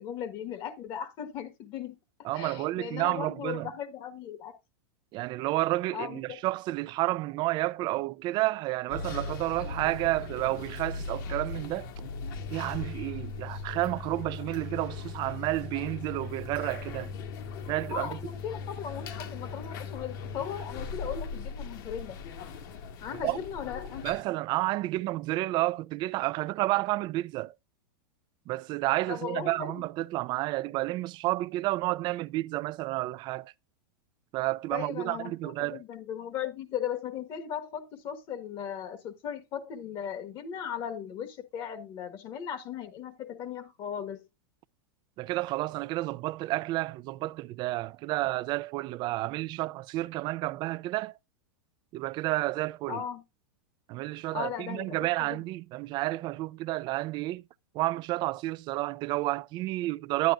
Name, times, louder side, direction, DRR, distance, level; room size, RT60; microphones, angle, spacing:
voice 1, 0.0-1.9 2.3-4.5 5.9-6.4 17.9-22.2 23.0-24.1 29.1-29.8 34.7-44.3 52.9-53.2 54.3-55.4, left 9 dB, 45° left, 1.5 m, -37 dB
voice 2, 2.2-3.7 5.1-11.9 12.5-17.1 17.7-18.2 23.2-23.4 24.0-27.5 28.5-33.5 34.3-35.8 45.2-51.1 51.9-53.0 53.9-57.4 57.7-60.3, right 18 dB, 40° right, 0.4 m, -30 dB
sound 1, 8.9-24.2, left 4 dB, 60° left, 1.9 m, -39 dB
10.5 x 9.3 x 2.5 m
supercardioid pair, 125°, 12 cm